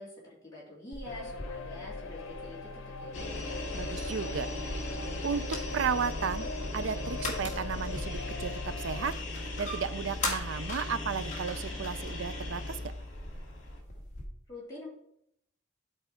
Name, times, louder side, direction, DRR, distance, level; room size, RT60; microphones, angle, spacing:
voice 1, 0.0-2.7 3.0-3.3 14.5-14.9, left 2 dB, 20° left, -7 dB, 3.2 m, -46 dB
sound 1, 0.9-14.2, left 2 dB, 35° left, 1.7 m, -43 dB
sound 2, 1.1-9.1, left 3 dB, 90° left, 0.8 m, -41 dB
sound 3, 3.1-13.8, left 1 dB, 65° left, 2.1 m, -38 dB
voice 2, 3.7-4.5 5.2-9.1 9.6-12.9, right 6 dB, 70° right, 14 dB, 0.5 m, -34 dB
11.0 x 4.5 x 4.4 m, 0.75 s
head